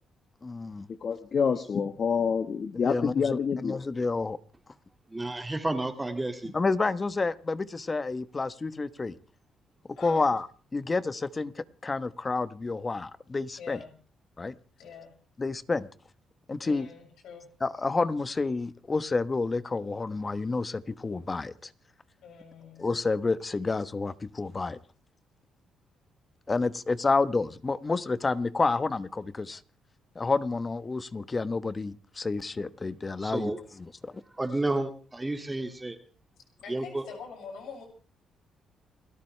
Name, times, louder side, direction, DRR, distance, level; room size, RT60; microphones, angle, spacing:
voice 1, 0.4-0.9 2.7-4.4 6.5-9.2 10.0-10.5 10.7-13.8 14.4-14.5 15.4-15.9 16.5-16.9 17.6-21.7 22.8-24.8 26.5-29.6 30.1-33.5 33.8-34.2, left 3 dB, 25° left, 14 dB, 1.1 m, -29 dB
voice 2, 1.0-3.8, left 6 dB, 50° left, 9 dB, 1.4 m, -27 dB
voice 3, 5.1-6.5 33.2-33.6 34.4-36.0 36.7-37.0, right 2 dB, 15° right, 6 dB, 2.2 m, -31 dB
voice 4, 10.0-10.3 13.6-13.9 14.8-15.1 16.6-17.5 22.2-22.9 36.6-37.9, left 6 dB, 80° left, 2 dB, 6.6 m, -45 dB
29.5 x 13.5 x 3.3 m, 0.39 s
cardioid pair, 90°, 0 cm